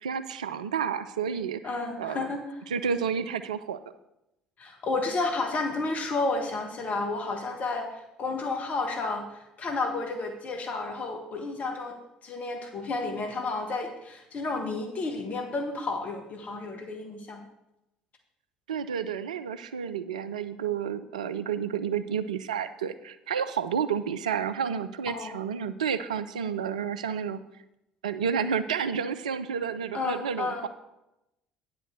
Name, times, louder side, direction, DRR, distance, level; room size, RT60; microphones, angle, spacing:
voice 1, 0.0-2.3 2.7-3.8 18.7-27.4 28.0-30.7, right 7 dB, 75° right, 12 dB, 0.4 m, -30 dB
voice 2, 1.6-2.4 4.6-12.0 12.2-17.4 25.1-25.3 29.9-30.6, left 3 dB, 40° left, 3 dB, 1.4 m, -31 dB
9.7 x 5.1 x 6.5 m, 0.88 s
figure-of-eight pair, 55°, 4 cm